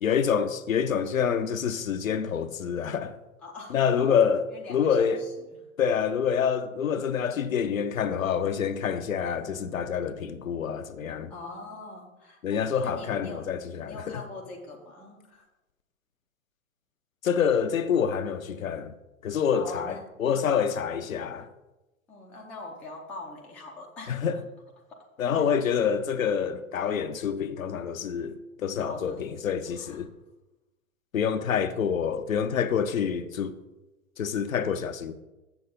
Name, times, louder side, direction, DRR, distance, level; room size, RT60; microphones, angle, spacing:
voice 1, 0.0-3.2 3.7-4.4 4.7-5.2 5.8-11.3 12.4-14.2 17.2-18.9 19.2-21.5 24.1-24.4 25.2-30.1 31.1-33.6 34.2-35.1, left 7 dB, 70° left, 0.7 m, -27 dB
voice 2, 3.4-4.1 4.5-5.6 11.3-13.5 13.8-15.5 19.5-20.4 22.1-24.2 24.9-25.4 25.7-25.8 28.8-29.2 29.7-30.1, left 3 dB, 5° left, 0.4 m, -43 dB
7.5 x 6.9 x 3.9 m
figure-of-eight pair, 110°, 42 cm